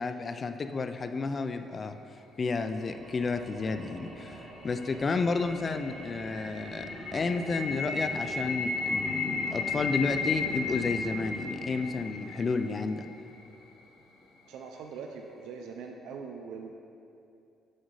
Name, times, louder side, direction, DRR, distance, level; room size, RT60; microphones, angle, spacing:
voice 1, 0.0-2.0 2.4-6.9 7.1-13.1, left 4 dB, 35° left, 8 dB, 0.4 m, -31 dB
sound 1, 2.5-12.8, right 1 dB, 35° right, 1.0 m, -45 dB
sound 2, 4.4-13.4, left 4 dB, 75° left, 0.8 m, -35 dB
voice 2, 14.4-16.7, right 5 dB, 90° right, 2 dB, 0.5 m, -42 dB
6.4 x 5.2 x 4.7 m, 2.6 s
cardioid pair, 105°, 0 cm